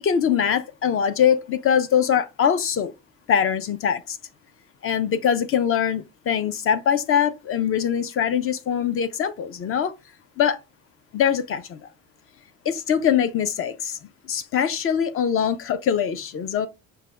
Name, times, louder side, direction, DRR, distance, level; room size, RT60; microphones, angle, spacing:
voice 1, 0.0-2.9 3.3-4.2 4.8-9.9 10.4-10.6 11.1-11.9 12.6-14.0 14.2-16.7, left 8 dB, 40° left, 0.7 m, -22 dB
5.6 x 2.3 x 3.5 m
cardioid pair, 110°, 35 cm